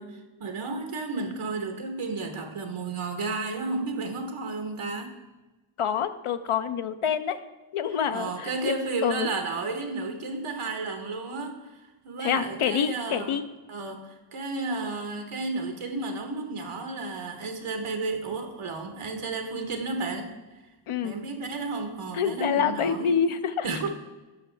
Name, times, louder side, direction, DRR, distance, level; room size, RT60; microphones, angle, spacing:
voice 1, 0.0-5.1 8.1-13.4 13.7-20.4 21.0-23.1 23.6-23.9, right 3 dB, 90° right, 5 dB, 1.2 m, -32 dB
voice 2, 5.8-7.4 7.7-9.3 12.2-13.4 20.9-21.1 22.1-23.7, left 7 dB, 80° left, 11 dB, 0.6 m, -27 dB
10.5 x 6.1 x 3.3 m, 1.2 s
cardioid pair, 55°, 49 cm